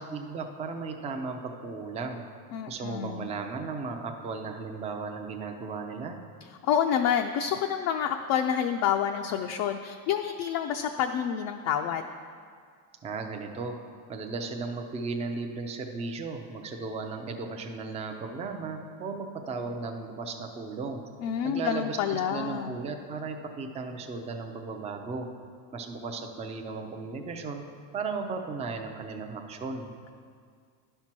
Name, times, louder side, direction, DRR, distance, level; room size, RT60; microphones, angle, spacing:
voice 1, 0.0-2.2 2.7-6.2 13.0-13.8 14.1-21.0 21.4-25.3 25.7-27.7 27.9-29.9, right 4 dB, 15° right, 4 dB, 0.4 m, -35 dB
voice 2, 2.5-3.3 6.6-12.0 21.2-22.8, left 8 dB, 50° left, 4 dB, 0.4 m, -28 dB
11.0 x 4.5 x 6.0 m, 2.1 s
cardioid pair, 130°, 46 cm